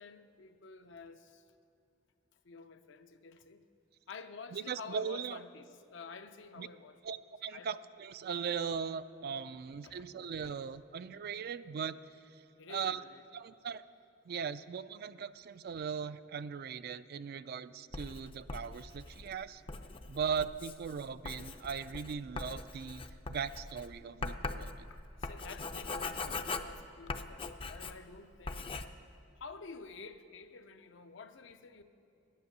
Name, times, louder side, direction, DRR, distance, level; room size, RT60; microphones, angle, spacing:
voice 1, 0.0-1.4 2.4-3.6 4.1-7.0 7.5-7.7 9.8-10.1 10.4-10.5 12.6-13.2 25.2-28.7 29.4-31.8, left 4 dB, 70° left, 9 dB, 0.6 m, -50 dB
voice 2, 4.5-5.4 6.6-6.7 7.0-12.0 12.3-12.4 12.7-13.0 13.3-13.8 14.3-19.6 20.1-23.0 23.3-24.9, right 6 dB, 55° right, 14 dB, 0.3 m, -39 dB
Writing, 17.9-28.2 28.5-28.9, left 3 dB, 30° left, 0.5 m, -41 dB
10.0 x 9.7 x 6.7 m, 2.8 s
head